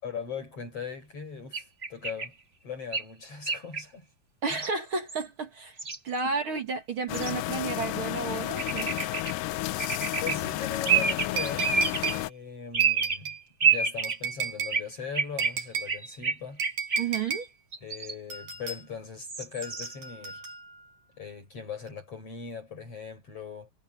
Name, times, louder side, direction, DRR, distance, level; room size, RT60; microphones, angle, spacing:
voice 1, 0.0-2.3 2.6-4.1 10.2-11.8 12.1-13.3 13.6-16.6 17.8-20.4 21.2-23.7, left 6 dB, 45° left, 6.1 m, -39 dB
sound 1, 1.5-2.3 2.9-3.0 3.5-3.8 4.5-4.7 4.9-5.3 5.8-6.2 7.1-7.3 8.6-9.3 9.8-10.4 10.8-12.1 12.7-13.2 13.6-14.2 14.7-14.8 15.1-17.3 17.7-18.1 19.2-19.9, right 6 dB, 25° right, 1.4 m, -28 dB
voice 2, 4.4-5.8 6.0-8.9 17.0-17.5, right 4 dB, 45° right, 2.1 m, -32 dB
sound 2, 7.1-12.3, left 17 dB, 80° left, 2.2 m, -32 dB
sound 3, 11.4-12.2 12.8-13.4 14.0-14.8 15.4-15.9 16.6-17.5 18.3-18.8 19.6-20.8 21.9-22.0, right 7 dB, 75° right, 8.1 m, -34 dB
omnidirectional pair, 4.0 m